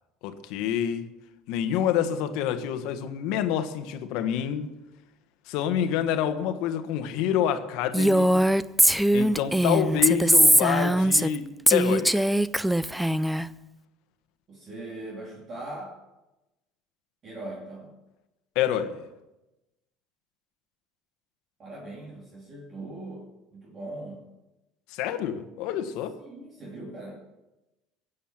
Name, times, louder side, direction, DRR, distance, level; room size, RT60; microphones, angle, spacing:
voice 1, 0.2-1.1 1.5-4.7 5.5-8.4 9.1-12.3 18.5-19.0 24.9-26.2, left 10 dB, 70° left, 9 dB, 1.4 m, -27 dB
Female speech woman speaking, 7.9-11.4 11.7-13.4, right 1 dB, 5° right, 0.4 m, -21 dB
voice 2, 14.5-16.0 17.2-17.9 21.6-23.3 23.5-24.2 26.2-27.1, right 2 dB, 30° right, -3 dB, 2.8 m, -40 dB
16.0 x 8.4 x 7.4 m, 1.0 s
cardioid pair, 145°, 0 cm